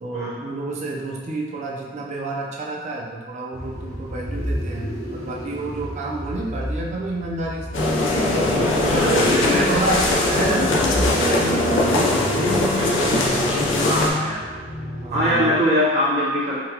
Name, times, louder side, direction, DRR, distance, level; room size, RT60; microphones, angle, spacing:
voice 1, 0.0-7.8 8.5-13.5 14.3-14.4 14.9-15.5, right 2 dB, 40° right, -2 dB, 0.5 m, -30 dB
sound 1, 3.5-15.7, equal, 60° left, 0.9 m, -31 dB
sound 2, 7.7-14.1, left 2 dB, 85° left, 0.5 m, -20 dB
voice 2, 9.0-9.8 10.1-10.3 13.8-14.4 15.1-16.6, equal, 60° right, -10 dB, 1.0 m, -22 dB
3.9 x 2.2 x 2.8 m, 1.5 s
head